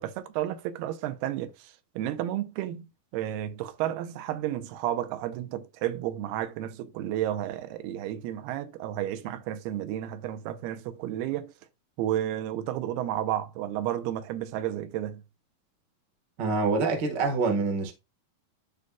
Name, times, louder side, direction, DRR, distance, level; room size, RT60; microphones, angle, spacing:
voice 1, 0.0-11.5 12.0-15.2, right 12 dB, 85° right, 2.7 m, -32 dB
voice 2, 16.4-17.9, right 4 dB, 70° right, 1.0 m, -26 dB
11.5 x 4.0 x 2.3 m
omnidirectional pair, 4.5 m